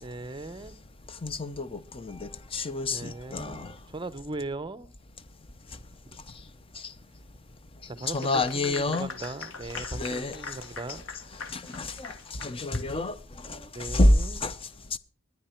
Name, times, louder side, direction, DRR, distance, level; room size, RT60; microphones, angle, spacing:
voice 1, 0.0-0.7 2.9-4.9 6.1-6.2 7.9-11.0 13.7-14.4, right 2 dB, 25° right, 0.7 m, -39 dB
voice 2, 1.2-3.7 8.1-9.1 9.8-10.3 11.5-12.1 12.4-13.1 13.5-14.1 14.4-14.5, left 1 dB, 25° left, 0.6 m, -27 dB
Clapping / Applause, 8.0-12.9, left 4 dB, 85° left, 1.4 m, -43 dB
20.5 x 9.5 x 4.4 m
head